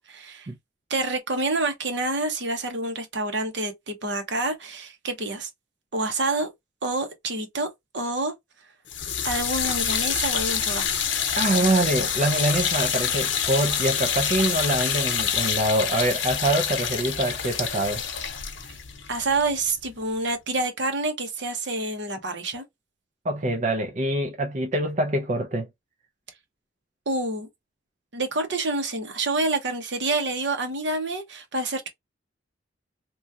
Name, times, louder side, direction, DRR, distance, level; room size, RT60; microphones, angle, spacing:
voice 1, 0.1-0.5 0.9-5.5 5.9-6.5 6.8-7.7 7.9-8.3 9.2-11.0 19.1-22.6 27.1-27.5 28.1-31.9, right 2 dB, 65° right, 0.9 m, -27 dB
sound 1, 8.9-20.0, left 8 dB, 75° left, 0.7 m, -27 dB
voice 2, 11.4-18.0 23.2-25.7, right 1 dB, 40° right, 0.5 m, -24 dB
3.0 x 2.3 x 2.6 m
head